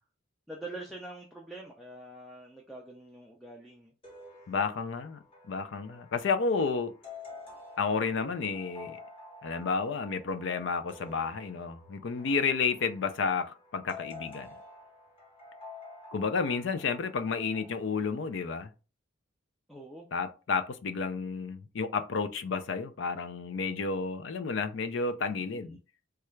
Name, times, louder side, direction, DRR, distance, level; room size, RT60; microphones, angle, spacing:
voice 1, 0.5-3.9 19.7-20.1 25.4-25.8, right 2 dB, ahead, 0.3 m, -45 dB
sound 1, 4.0-17.8, left 3 dB, 25° left, 1.0 m, -50 dB
voice 2, 4.5-5.2 5.5-6.9 7.8-9.0 9.4-14.5 16.1-18.7 20.1-25.8, left 5 dB, 65° left, 0.4 m, -31 dB
3.2 x 2.3 x 3.0 m
head